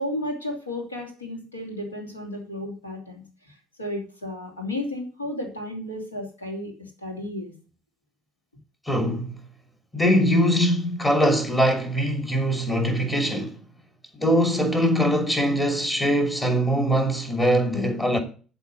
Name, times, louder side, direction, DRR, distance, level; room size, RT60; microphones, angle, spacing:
voice 1, 0.0-7.5, left 1 dB, 85° left, 3.1 m, -33 dB
voice 2, 8.9-9.3 9.9-13.5 14.2-18.2, equal, 20° left, 2.8 m, -22 dB
12.5 x 4.3 x 8.3 m
figure-of-eight pair, 55°, 0 cm